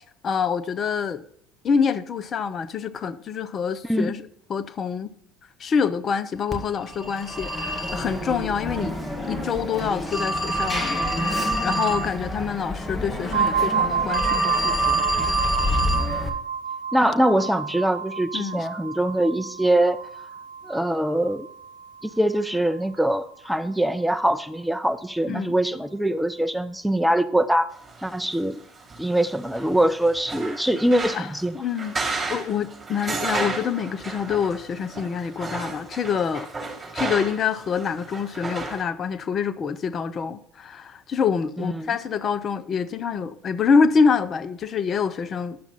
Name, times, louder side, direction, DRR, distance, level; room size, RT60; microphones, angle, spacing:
voice 1, 0.2-1.2 1.6-5.1 5.6-8.9 9.3-15.4 18.3-18.7 25.3-25.5 31.1-31.3 31.5-32.0 32.3-36.5 36.9-45.6, left 6 dB, 40° left, 0.6 m, -26 dB
Telephone, 6.5-16.3, equal, 15° left, 1.9 m, -27 dB
sound 1, 13.3-23.0, right 7 dB, 70° right, 0.5 m, -30 dB
voice 2, 16.9-20.0 20.6-21.5 22.0-27.7 28.0-28.6 29.0-31.6 41.6-42.0, right 1 dB, ahead, 0.6 m, -23 dB
sound 2, 27.8-38.8, right 3 dB, 20° right, 3.4 m, -33 dB
10.5 x 7.2 x 4.0 m
figure-of-eight pair, 65°, 0 cm